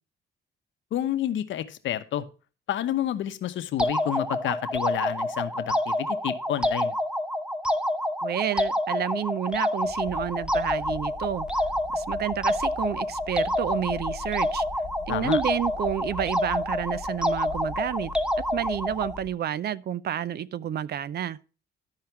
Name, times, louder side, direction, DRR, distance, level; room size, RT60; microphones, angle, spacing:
voice 1, 0.9-2.3 2.7-6.9 15.1-15.4, left 11 dB, 75° left, 0.9 m, -29 dB
sound 1, 3.8-19.2, left 1 dB, 5° right, 0.8 m, -28 dB
voice 2, 8.2-11.5 11.9-14.6 15.1-18.1 18.5-21.4, right 10 dB, 55° right, 0.5 m, -30 dB
sound 2, 9.8-19.3, left 6 dB, 35° left, 0.5 m, -42 dB
12.5 x 4.9 x 4.5 m
cardioid pair, 90°, 20 cm